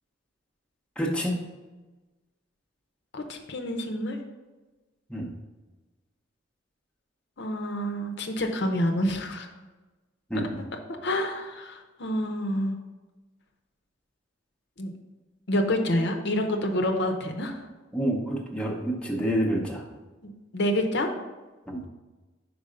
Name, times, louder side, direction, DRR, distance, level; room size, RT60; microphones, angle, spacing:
voice 1, 1.0-1.4 5.1-5.3 10.3-10.6 17.9-19.8 21.7-21.8, equal, 5° left, -1 dB, 0.8 m, -28 dB
voice 2, 3.1-4.2 7.4-9.5 11.0-12.7 14.8-14.9 15.5-17.6 20.2-21.1, left 1 dB, 60° left, 4 dB, 0.7 m, -28 dB
5.4 x 4.7 x 5.0 m, 1.2 s
head